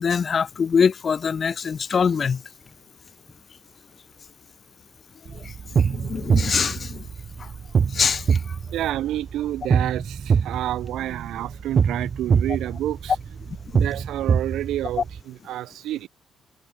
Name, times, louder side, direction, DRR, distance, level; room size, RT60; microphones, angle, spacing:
voice 1, 0.0-2.4 5.4-5.5 5.8-7.0 7.9-8.4 13.7-13.8, left 6 dB, 45° left, 0.4 m, -23 dB
sound 1, 0.6-15.5, left 3 dB, 20° left, 7.3 m, -60 dB
sound 2, 5.3-15.2, right 6 dB, 45° right, 0.7 m, -24 dB
voice 2, 8.7-13.2 13.7-16.1, right 13 dB, 85° right, 0.9 m, -29 dB
cardioid pair, 90°, 0 cm